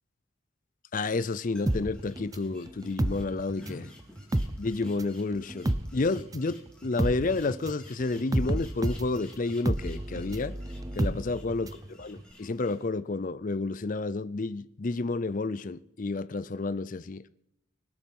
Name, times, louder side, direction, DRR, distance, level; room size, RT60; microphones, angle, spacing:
voice 1, 0.9-3.9 4.6-10.6 10.9-17.3, left 3 dB, 40° left, 0.5 m, -30 dB
sound 1, 1.2-12.8, left 2 dB, 5° left, 3.4 m, -53 dB
sound 2, 1.7-3.9 4.2-11.9 12.2-12.3, right 1 dB, 15° right, 0.6 m, -30 dB
25.5 x 8.7 x 5.4 m
head